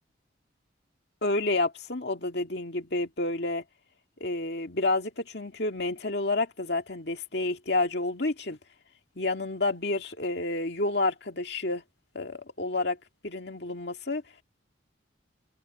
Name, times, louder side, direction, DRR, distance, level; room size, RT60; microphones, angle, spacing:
voice 1, 1.2-3.6 4.2-8.6 9.2-11.8 12.1-13.0 13.2-14.2, left 2 dB, 55° left, 2.2 m, -29 dB
open air
head